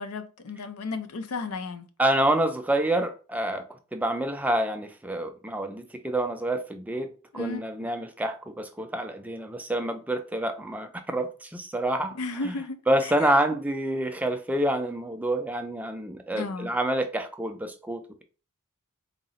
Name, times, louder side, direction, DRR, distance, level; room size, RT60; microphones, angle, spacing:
voice 1, 0.0-1.9 7.3-7.9 12.1-13.3 16.3-16.7, left 3 dB, 90° left, 0.5 m, -34 dB
voice 2, 2.0-3.6 3.9-12.2 12.4-12.5 12.9-18.2, right 1 dB, 5° right, 0.3 m, -27 dB
3.8 x 2.0 x 3.9 m
head